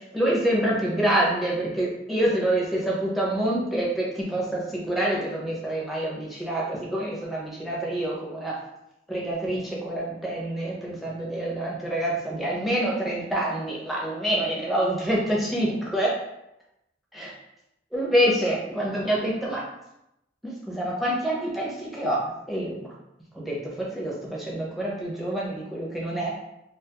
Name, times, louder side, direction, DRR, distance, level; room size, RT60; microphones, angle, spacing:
voice 1, 0.1-8.6 9.1-16.1 17.1-17.3 17.9-19.6 20.4-22.9 23.3-26.3, right 1 dB, ahead, -5 dB, 0.6 m, -26 dB
2.5 x 2.3 x 2.8 m, 0.86 s
head